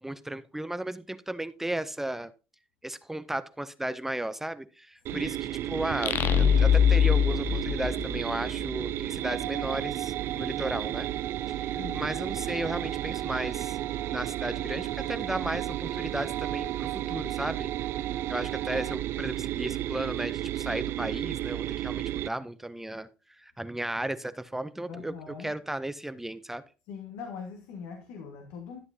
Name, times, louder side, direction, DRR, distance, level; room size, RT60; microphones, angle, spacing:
voice 1, 0.0-2.3 2.8-11.1 11.5-13.8 14.1-17.7 18.3-26.6, right 1 dB, 5° right, 0.5 m, -35 dB
voice 2, 5.1-5.5 11.8-12.1 24.9-25.5 26.9-28.8, left 6 dB, 80° left, 1.6 m, -42 dB
sound 1, 5.1-22.3, right 13 dB, 60° right, 0.4 m, -33 dB
sound 2, 6.0-8.7, left 8 dB, 50° left, 0.4 m, -23 dB
sound 3, 9.2-19.0, right 12 dB, 75° right, 0.9 m, -39 dB
12.5 x 7.6 x 2.7 m
cardioid pair, 105°, 5 cm